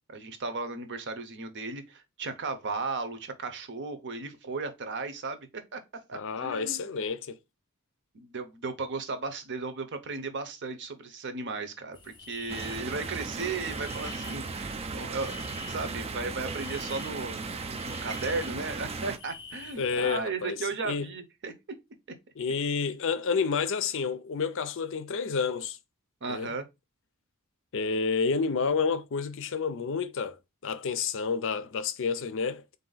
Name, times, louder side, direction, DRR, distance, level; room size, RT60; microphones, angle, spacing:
voice 1, 0.1-6.9 8.1-17.5 17.8-21.5 26.2-26.7, right 3 dB, 55° right, 0.7 m, -35 dB
voice 2, 6.1-7.4 19.8-20.6 20.8-21.1 22.4-25.8 26.3-26.5 27.7-30.4 30.6-32.6, left 5 dB, 60° left, 0.5 m, -29 dB
sound 1, 11.9-20.2, left 4 dB, 20° left, 0.7 m, -48 dB
sound 2, 12.5-19.2, right 4 dB, 25° right, 0.4 m, -36 dB
3.9 x 2.6 x 3.9 m
head